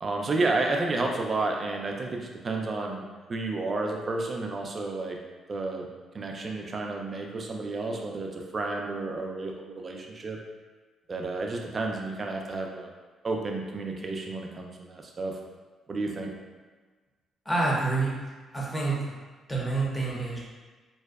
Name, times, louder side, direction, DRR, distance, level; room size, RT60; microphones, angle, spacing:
voice 1, 0.0-3.0 3.3-5.2 5.5-5.9 6.1-10.4 11.1-12.9 13.2-15.4 15.9-16.3, right 3 dB, 40° right, 1 dB, 0.4 m, -31 dB
voice 2, 17.5-18.2 18.5-19.1 19.5-20.4, right 3 dB, 15° left, -4 dB, 0.7 m, -27 dB
2.6 x 2.1 x 2.3 m, 1.4 s
cardioid pair, 90°, 0 cm